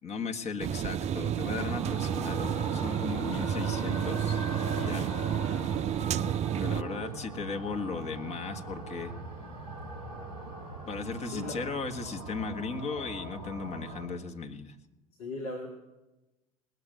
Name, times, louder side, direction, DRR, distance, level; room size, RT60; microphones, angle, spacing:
voice 1, 0.0-4.4 4.7-5.2 6.5-9.1 10.9-14.7, left 4 dB, 35° left, 7 dB, 1.6 m, -36 dB
sound 1, 0.6-6.8, right 9 dB, 35° right, 0.5 m, -31 dB
sound 2, 1.6-14.1, right 2 dB, 90° left, 3.5 m, -40 dB
voice 2, 6.6-7.1 7.4-7.5 11.2-11.6 15.2-15.7, left 1 dB, 70° left, 3 dB, 2.1 m, -39 dB
19.0 x 7.9 x 9.3 m, 1.1 s
figure-of-eight pair, 70°, 19 cm